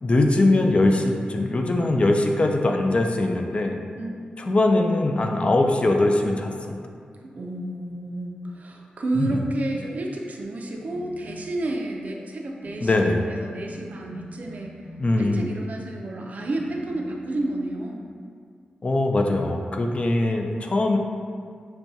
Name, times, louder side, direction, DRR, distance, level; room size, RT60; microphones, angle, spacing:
voice 1, 0.0-3.8 4.4-6.8 9.1-9.4 12.8-13.2 15.0-15.5 18.8-21.0, left 2 dB, 40° left, 3 dB, 0.4 m, -21 dB
voice 2, 3.9-4.6 7.2-14.7 15.2-18.0, right 2 dB, 60° right, 0 dB, 0.5 m, -31 dB
sound 1, 10.9-11.7 12.6-15.6 16.6-17.6, equal, 65° left, 1.2 m, -45 dB
5.9 x 2.3 x 2.7 m, 2.1 s
wide cardioid pair, 80°, 3 cm